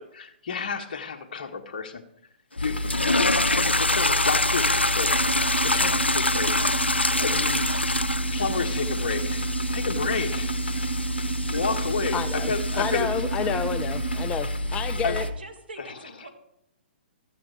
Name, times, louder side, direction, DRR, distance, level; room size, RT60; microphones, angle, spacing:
voice 1, 0.0-2.0 2.6-7.7 8.1-10.6 11.5-13.1 13.4-13.6 15.0-15.2 15.8-16.0, left 5 dB, 50° left, 4 dB, 1.4 m, -31 dB
sound 1, 2.6-15.3, equal, 65° left, 1.1 m, -30 dB
sound 2, 2.8-13.0, left 2 dB, 85° left, 0.4 m, -26 dB
sound 3, 5.1-14.3, right 13 dB, 40° right, 0.5 m, -34 dB
voice 2, 12.1-15.2, left 7 dB, 15° left, 11 dB, 0.4 m, -30 dB
voice 3, 15.2-16.3, right 3 dB, 65° right, 4 dB, 2.0 m, -43 dB
13.5 x 8.3 x 4.9 m, 0.80 s
figure-of-eight pair, 120°, 6 cm